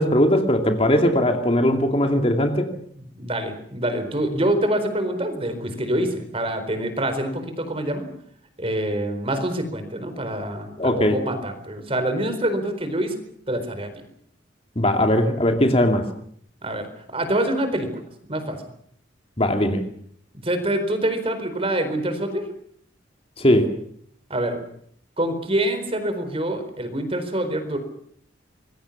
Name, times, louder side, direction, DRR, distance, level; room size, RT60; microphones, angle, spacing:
voice 1, 0.0-2.7 10.8-11.2 14.8-16.1 19.4-19.8 23.4-23.7, left 1 dB, 30° left, 5 dB, 2.6 m, -19 dB
voice 2, 2.9-8.0 8.6-13.1 13.5-13.9 16.6-18.0 18.3-18.6 20.3-22.5 24.3-24.6 25.2-27.8, right 1 dB, 30° right, 9 dB, 4.3 m, -26 dB
25.5 x 22.0 x 7.2 m, 0.65 s
head